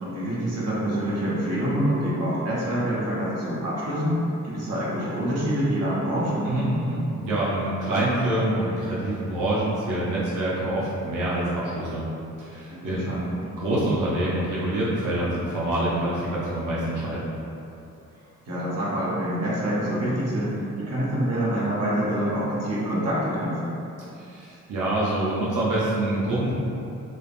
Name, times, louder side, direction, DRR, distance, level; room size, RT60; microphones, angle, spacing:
voice 1, 0.0-6.5 12.7-13.2 18.5-23.8, equal, 55° right, -8 dB, 0.7 m, -26 dB
voice 2, 6.4-12.0 12.4-17.3 24.2-26.5, right 1 dB, 90° right, -7 dB, 0.5 m, -26 dB
3.3 x 2.0 x 2.3 m, 2.8 s
wide cardioid pair, 170°, 31 cm